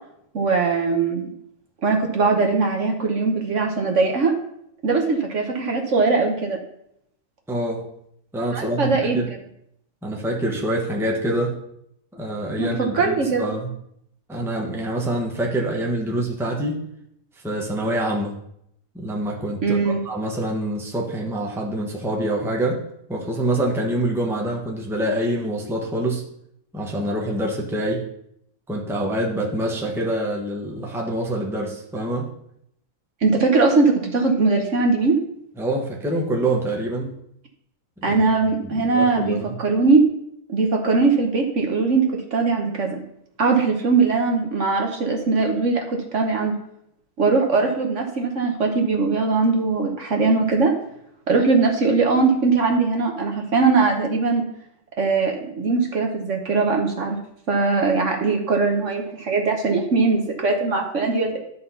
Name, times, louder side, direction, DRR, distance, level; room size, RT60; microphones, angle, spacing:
voice 1, 0.3-1.3 1.8-4.3 4.8-6.6 8.5-9.2 12.6-12.7 12.9-13.5 19.6-20.0 33.2-35.2 38.0-40.0 40.5-43.0 43.4-46.5 47.2-50.7 51.3-54.4 55.0-57.2 57.5-61.4, right 4 dB, 55° right, 2 dB, 1.3 m, -20 dB
voice 2, 7.5-7.8 8.3-9.3 10.0-11.6 12.1-13.7 14.3-16.8 17.4-18.4 18.9-22.8 23.1-26.2 26.7-28.0 28.7-32.3 35.6-37.2 38.0-38.2 38.6-39.5, right 1 dB, ahead, -1 dB, 1.1 m, -26 dB
12.0 x 4.1 x 5.6 m, 0.74 s
omnidirectional pair, 1.6 m